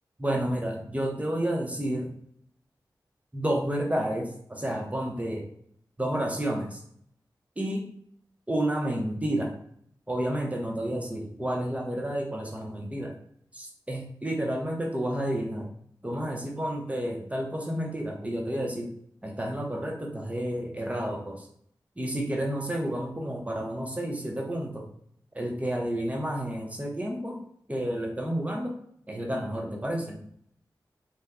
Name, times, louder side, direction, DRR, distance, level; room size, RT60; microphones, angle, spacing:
voice 1, 0.2-2.1 3.3-5.5 6.0-6.8 7.6-7.9 8.5-9.5 10.1-13.2 13.5-15.7 16.0-18.9 19.2-21.5 22.0-24.9 25.3-27.4 27.7-28.8 29.1-30.3, right 1 dB, 20° right, 0 dB, 0.8 m, -30 dB
2.6 x 2.2 x 3.4 m, 0.66 s
cardioid pair, 45°, 8 cm